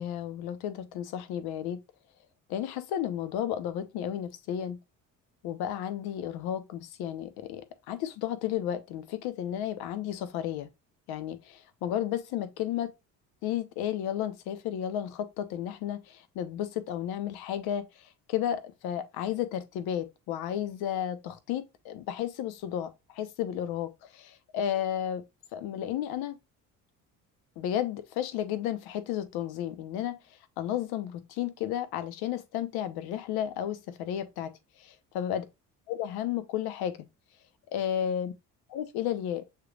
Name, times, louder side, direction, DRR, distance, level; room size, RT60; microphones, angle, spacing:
voice 1, 0.0-1.8 2.5-4.8 5.4-10.7 11.1-12.9 13.4-17.9 18.3-25.2 25.5-26.4 27.6-30.2 30.6-34.5 34.8-35.4 35.9-37.0 37.7-38.3 38.7-39.4, left 10 dB, 75° left, 0.9 m, -33 dB
6.5 x 3.3 x 2.3 m
supercardioid pair, 70°, 38 cm